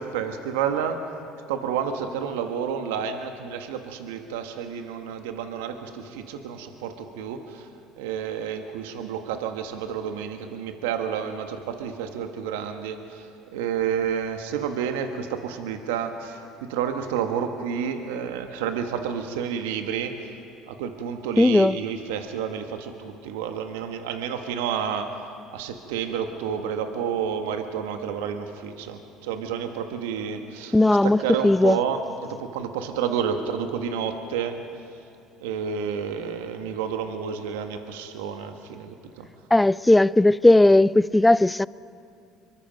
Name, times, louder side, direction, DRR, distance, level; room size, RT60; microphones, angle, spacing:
voice 1, 0.0-7.7 8.0-20.3 20.7-25.2 25.5-30.8 31.0-32.0 32.3-34.6 35.4-39.3, right 7 dB, 85° right, 1.4 m, -30 dB
voice 2, 21.4-21.8 30.7-31.2 31.4-31.8 39.5-41.7, left 2 dB, 10° left, 0.4 m, -17 dB
26.0 x 23.0 x 5.3 m
supercardioid pair, 80°, 0 cm